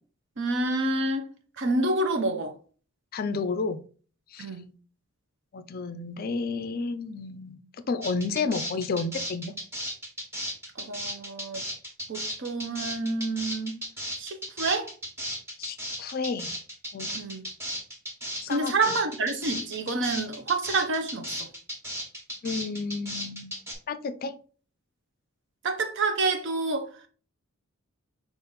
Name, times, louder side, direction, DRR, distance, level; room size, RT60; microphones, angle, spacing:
voice 1, 0.4-1.2 1.6-2.5 4.4-4.7 10.8-11.6 12.1-13.8 14.2-14.9 17.1-17.4 18.5-21.5 25.6-26.9, right 3 dB, 55° right, 0.6 m, -28 dB
voice 2, 3.1-3.8 4.3-4.5 5.5-9.5 15.6-16.5 16.9-17.2 18.4-18.9 22.4-23.5 23.9-24.3, left 4 dB, 45° left, 0.4 m, -31 dB
sound 1, 8.0-23.7, equal, 10° right, 1.1 m, -35 dB
5.1 x 2.5 x 3.9 m
head